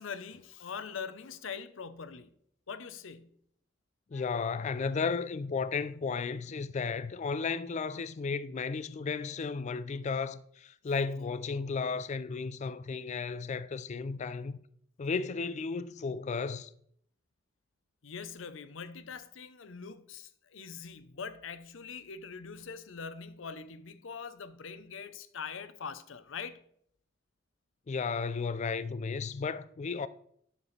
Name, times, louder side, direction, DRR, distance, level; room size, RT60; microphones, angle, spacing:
voice 1, 0.0-2.3 2.7-3.4 4.1-4.3 18.0-26.6, left 6 dB, 75° left, 0.6 m, -43 dB
voice 2, 4.1-14.6 15.0-16.7 27.9-30.1, left 5 dB, 35° left, 0.4 m, -34 dB
9.9 x 6.8 x 3.2 m
head